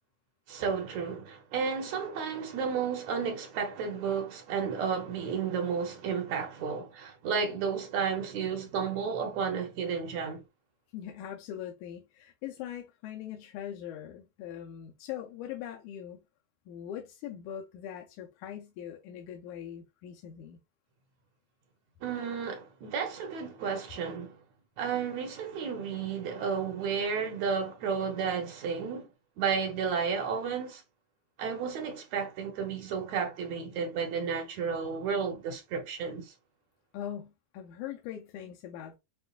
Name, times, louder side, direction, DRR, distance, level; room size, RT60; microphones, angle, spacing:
voice 1, 0.5-10.4 22.0-24.4 24.8-29.1 29.4-30.8 31.4-36.3, right 6 dB, 70° right, 1.9 m, -32 dB
voice 2, 10.9-16.2 16.7-20.6 36.9-39.0, left 10 dB, 90° left, 2.0 m, -41 dB
7.1 x 2.4 x 2.3 m
omnidirectional pair, 3.5 m